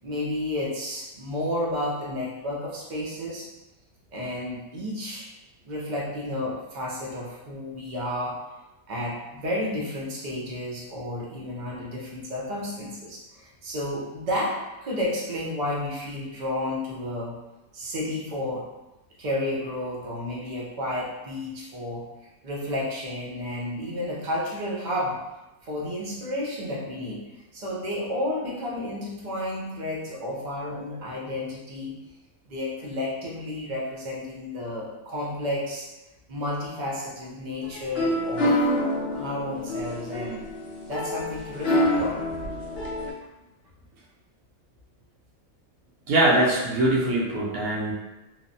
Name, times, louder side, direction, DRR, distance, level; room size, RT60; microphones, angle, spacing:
voice 1, 0.0-3.5 4.1-5.3 5.6-8.4 8.9-17.4 17.7-18.7 19.2-22.1 22.4-25.2 25.6-27.2 27.5-32.0 32.5-35.9 36.3-38.5 39.1-40.5 40.9-42.3, left 1 dB, 55° right, -4 dB, 0.5 m, -31 dB
sound 1, 37.6-43.1, left 1 dB, 65° left, 0.6 m, -27 dB
voice 2, 46.1-47.9, right 1 dB, 75° right, -3 dB, 1.0 m, -22 dB
2.9 x 2.0 x 2.6 m, 0.99 s
omnidirectional pair, 1.5 m